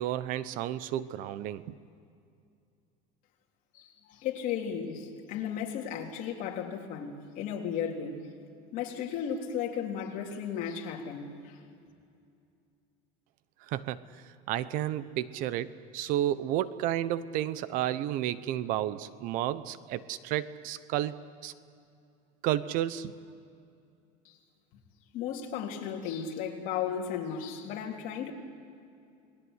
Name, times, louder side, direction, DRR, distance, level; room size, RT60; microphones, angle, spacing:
voice 1, 0.0-1.7 13.7-14.0 14.5-21.5 22.4-23.1, right 12 dB, 55° right, 15 dB, 0.9 m, -32 dB
voice 2, 3.7-8.2 8.7-11.5 25.1-28.3, left 8 dB, 55° left, 0 dB, 3.7 m, -35 dB
29.5 x 20.5 x 8.2 m, 2.5 s
cardioid pair, 155°, 17 cm